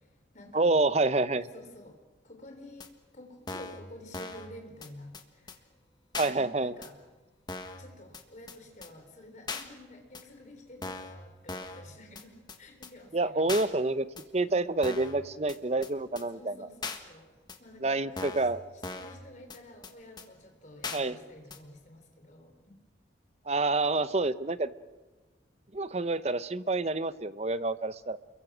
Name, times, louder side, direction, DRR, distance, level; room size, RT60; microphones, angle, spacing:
voice 1, 0.0-0.8 1.5-2.9 3.1-5.7 6.2-7.0 7.8-13.6 14.5-14.9 16.3-18.5 18.9-22.8, left 1 dB, 40° left, 3 dB, 3.8 m, -50 dB
voice 2, 0.5-1.5 6.2-6.8 13.1-14.1 14.3-16.5 17.8-18.6 20.9-21.2 23.5-24.7 25.7-28.2, right 2 dB, 35° right, 14 dB, 0.7 m, -28 dB
sound 1, 2.8-2.9 3.5-3.8 4.1-4.5 4.8-4.9 5.1-5.2 5.5-5.6 6.1-6.3 6.8-6.9 7.5-7.8 8.1-8.2 8.5-8.6 8.8-8.9 9.5-9.6 10.1-10.2 10.8-11.1 11.5-11.8 12.1-12.2 12.5-12.6 12.8-12.9 13.5-13.7 14.2-14.3 14.8-15.1 15.5-15.6 15.8-15.9 16.2-16.3 16.8-17.0 17.5-17.6 18.2-18.5 18.8-19.2 19.5-19.6 19.8-19.9 20.2-20.3 20.8-21.0 21.5-21.6, left 3 dB, 25° left, 1.5 m, -38 dB
29.0 x 22.5 x 6.2 m, 1.3 s
head